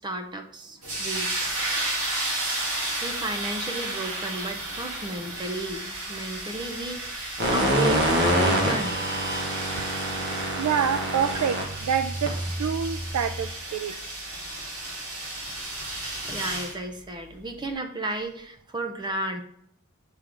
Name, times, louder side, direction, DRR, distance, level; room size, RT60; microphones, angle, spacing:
voice 1, 0.0-1.6 3.0-9.1 16.3-19.4, right 2 dB, 20° right, 5 dB, 0.5 m, -33 dB
sound 1, 0.8-16.7, right 2 dB, 65° right, 2.2 m, -33 dB
sound 2, 7.4-13.5, right 1 dB, 50° right, 1.3 m, -26 dB
voice 2, 10.6-12.3 12.6-13.9, right 7 dB, 85° right, 9 dB, 0.3 m, -26 dB
8.2 x 3.7 x 3.3 m, 0.71 s
head